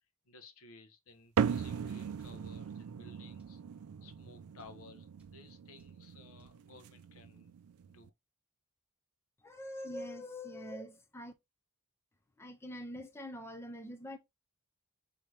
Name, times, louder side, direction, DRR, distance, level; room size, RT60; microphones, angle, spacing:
voice 1, 0.2-3.6 4.0-7.5 7.9-8.1, left 3 dB, 70° left, 0.8 m, -57 dB
sound 1, 1.4-8.1, right 7 dB, 75° right, 0.4 m, -39 dB
sound 2, 2.2-2.4 3.4-3.6 4.6-4.8 5.2-5.4 5.8-6.0 6.4-6.6, right 1 dB, 5° right, 1.0 m, -68 dB
voice 2, 9.4-11.3 12.4-14.2, left 1 dB, 10° left, 0.4 m, -44 dB
4.7 x 2.8 x 3.2 m
head